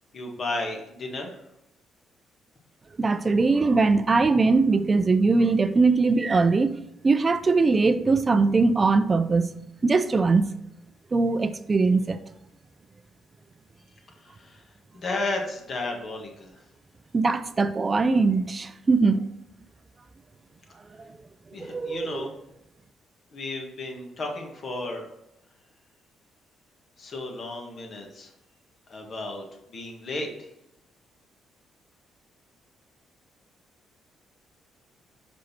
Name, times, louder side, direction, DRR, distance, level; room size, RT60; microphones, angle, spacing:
voice 1, 0.1-1.3 14.3-14.6 14.9-16.5 21.5-22.3 23.3-25.1 27.0-28.3 28.9-29.4 29.7-30.3, left 2 dB, 50° left, 1.6 m, -33 dB
voice 2, 3.0-6.7 7.0-10.5 11.1-12.2 17.1-19.2 21.6-22.3, right 3 dB, 30° right, 0.5 m, -21 dB
5.5 x 5.1 x 4.3 m
cardioid pair, 90°, 0 cm